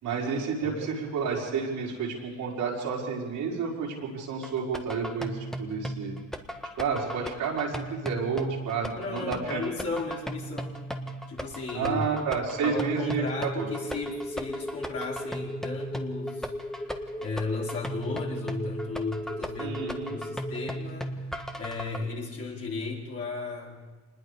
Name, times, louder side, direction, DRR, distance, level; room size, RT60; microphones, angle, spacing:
voice 1, 0.0-6.2 6.8-9.6 11.7-13.3 13.6-13.7 19.6-20.2, right 5 dB, 85° right, -3 dB, 5.3 m, -30 dB
voice 2, 0.6-1.0 8.9-10.8 11.3-12.0 12.6-23.8, left 3 dB, 50° left, -4 dB, 5.2 m, -35 dB
sound 1, 4.4-22.0, equal, ahead, 1.7 m, -37 dB
sound 2, 12.9-20.8, equal, 20° left, 2.2 m, -38 dB
26.0 x 20.5 x 5.1 m, 1.3 s
cardioid pair, 90°, 30 cm